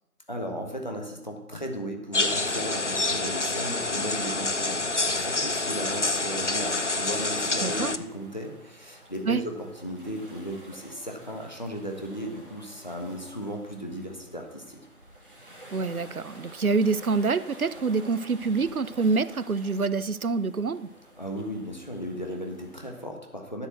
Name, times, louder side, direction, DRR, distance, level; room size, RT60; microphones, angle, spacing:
voice 1, 0.3-14.8 21.2-23.7, equal, 30° left, 2 dB, 1.5 m, -36 dB
sound 1, 2.1-8.0, left 2 dB, 50° left, 0.8 m, -27 dB
sound 2, 6.4-23.1, right 1 dB, 35° right, 2.4 m, -50 dB
voice 2, 7.6-7.9 9.3-9.4 15.7-20.9, right 4 dB, 70° right, 16 dB, 0.7 m, -26 dB
11.5 x 6.6 x 7.6 m, 0.91 s
figure-of-eight pair, 175°, 44 cm